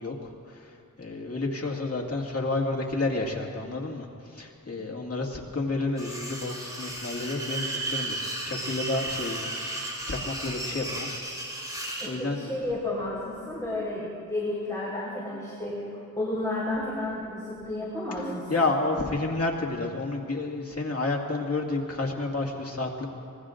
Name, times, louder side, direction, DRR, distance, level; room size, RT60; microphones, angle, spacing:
voice 1, 0.0-8.2 8.4-11.1 12.1-12.4 18.5-23.1, left 2 dB, 45° left, -1 dB, 2.0 m, -30 dB
sound 1, 6.0-12.1, right 2 dB, 10° right, 4.8 m, -34 dB
voice 2, 12.0-18.5, left 1 dB, 10° left, -7 dB, 4.4 m, -32 dB
25.0 x 21.5 x 2.6 m, 2.5 s
wide cardioid pair, 85°, 35 cm